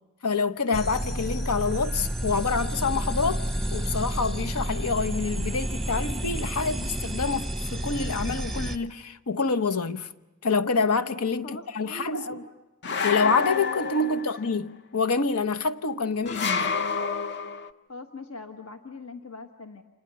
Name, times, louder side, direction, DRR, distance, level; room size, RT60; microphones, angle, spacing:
voice 1, 0.2-3.5 3.7-10.1 10.4-12.4 13.0-16.8, left 4 dB, 80° left, 0.9 m, -27 dB
sound 1, 0.7-8.8, right 1 dB, ahead, 0.9 m, -30 dB
voice 2, 11.4-12.5 14.0-14.3 17.9-19.8, left 2 dB, 65° left, 1.4 m, -41 dB
sound 2, 12.8-14.5 16.3-17.7, left 5 dB, 50° left, 0.8 m, -28 dB
29.5 x 27.0 x 6.9 m
head